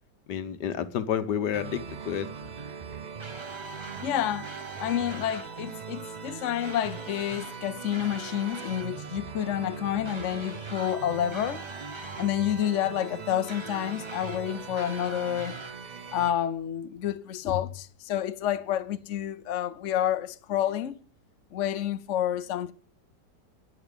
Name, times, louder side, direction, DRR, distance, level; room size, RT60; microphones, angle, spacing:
voice 1, 0.3-2.3, left 9 dB, 75° left, 1.6 m, -30 dB
sound 1, 1.5-16.3, right 6 dB, 80° right, 0.4 m, -40 dB
sound 2, 3.2-4.1 4.4-5.5 6.6-7.6 7.9-8.9 10.0-11.0 11.3-12.3 13.5-14.4 14.8-15.7, right 2 dB, 20° right, 1.1 m, -44 dB
voice 2, 4.0-4.5 4.8-11.6 12.2-15.6 16.1-21.0 21.5-22.7, left 11 dB, 55° left, 1.0 m, -29 dB
10.5 x 10.0 x 8.2 m
omnidirectional pair, 1.8 m